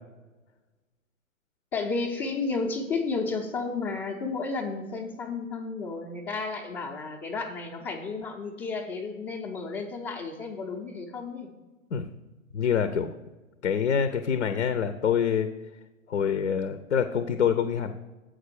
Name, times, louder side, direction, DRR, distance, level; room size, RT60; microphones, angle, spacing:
voice 1, 1.7-11.5, left 4 dB, 15° left, -5 dB, 0.6 m, -32 dB
voice 2, 12.5-13.1 13.6-15.5 16.1-18.0, left 7 dB, 60° left, 10 dB, 0.7 m, -26 dB
7.9 x 5.0 x 6.6 m, 1.1 s
figure-of-eight pair, 115°, 40 cm